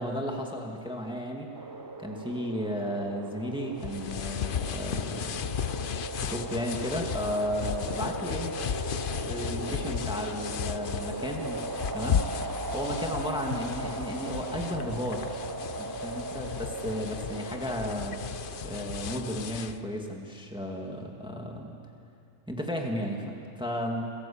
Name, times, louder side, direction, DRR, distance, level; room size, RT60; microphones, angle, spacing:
voice 1, 0.0-1.5 2.0-5.5 6.2-8.5 9.2-11.7 11.9-12.2 12.7-15.3 15.8-21.8 22.5-24.0, equal, 5° right, 1 dB, 2.1 m, -34 dB
sound 1, 1.5-19.5, right 3 dB, 25° right, 0.4 m, -38 dB
sound 2, 3.8-19.8, left 8 dB, 55° left, 0.6 m, -35 dB
29.0 x 15.5 x 8.7 m, 2.6 s
omnidirectional pair, 1.6 m